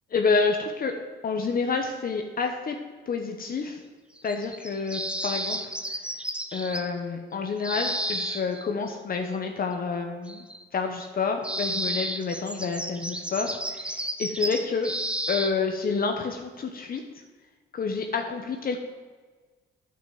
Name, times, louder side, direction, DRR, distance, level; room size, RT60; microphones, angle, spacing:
voice 1, 0.1-0.9 1.2-2.8 3.1-3.8 4.2-5.7 6.5-10.4 10.7-14.9 15.3-17.0 17.7-18.8, left 4 dB, 45° left, 4 dB, 1.0 m, -28 dB
sound 1, 4.2-6.9 7.6-8.6 10.3-10.6 11.0-11.1 11.4-15.5, right 1 dB, 5° right, 0.9 m, -32 dB
9.2 x 6.0 x 7.7 m, 1.4 s
cardioid pair, 90°, 20 cm